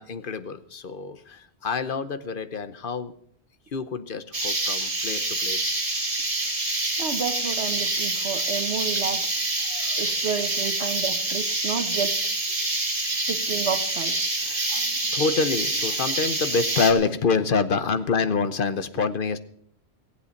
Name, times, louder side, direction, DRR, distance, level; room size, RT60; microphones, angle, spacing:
voice 1, 0.0-3.1 3.7-5.8 9.7-10.1 10.8-10.9 14.4-19.4, left 4 dB, 55° left, 1.0 m, -27 dB
sound 1, 4.3-16.9, right 2 dB, 35° right, 1.8 m, -26 dB
voice 2, 7.0-9.3 10.0-12.2 13.3-14.4, right 6 dB, 90° right, 1.3 m, -31 dB
18.0 x 8.3 x 6.5 m
omnidirectional pair, 1.1 m